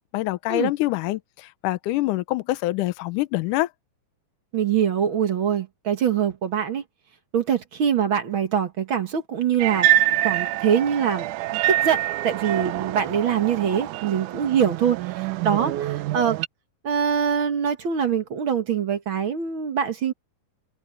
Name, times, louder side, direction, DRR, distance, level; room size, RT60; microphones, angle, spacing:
voice 1, 0.1-3.7, left 17 dB, 75° left, 2.0 m, -25 dB
voice 2, 4.5-6.8 7.3-9.9 10.2-16.4 16.8-20.1, right 8 dB, 60° right, 1.4 m, -24 dB
sound 1, 9.6-16.5, right 14 dB, 80° right, 1.8 m, -25 dB
omnidirectional pair, 4.3 m